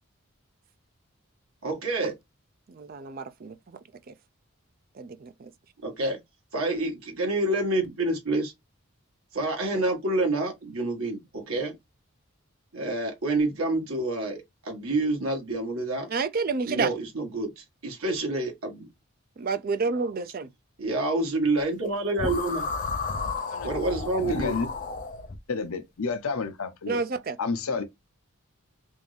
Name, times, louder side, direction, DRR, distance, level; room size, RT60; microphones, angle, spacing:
voice 1, 1.6-2.1 5.8-6.2 6.5-8.5 9.3-11.8 12.7-16.1 16.7-18.9 20.8-22.7 23.6-24.6, right 2 dB, 75° right, 1.5 m, -28 dB
voice 2, 2.7-3.8 4.1-4.2 5.0-5.5 16.1-16.9 19.4-20.5 26.9-27.4, right 4 dB, 40° right, 0.4 m, -29 dB
sound 1, 22.2-25.4, left 4 dB, 35° left, 0.5 m, -32 dB
voice 3, 24.2-24.7 25.5-27.0 27.4-27.8, left 4 dB, 80° left, 0.8 m, -30 dB
3.5 x 2.6 x 3.2 m
head